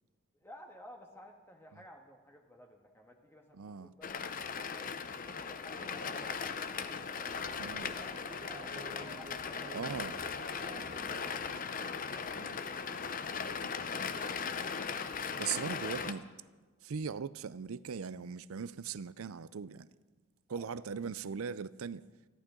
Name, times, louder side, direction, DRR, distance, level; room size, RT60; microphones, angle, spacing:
voice 1, 0.3-4.1 4.5-7.9 8.4-9.8 20.5-21.0, equal, 10° left, 1.5 m, -56 dB
voice 2, 3.5-3.9 7.6-7.9 9.7-10.2 12.4-12.6 13.8-13.9 15.4-16.3 16.8-19.9 20.5-22.1, right 6 dB, 75° right, 0.5 m, -39 dB
sound 1, 4.0-16.1, left 5 dB, 40° left, 0.7 m, -38 dB
sound 2, 5.7-11.6, right 1 dB, 25° right, 0.8 m, -52 dB
29.5 x 11.5 x 3.8 m
head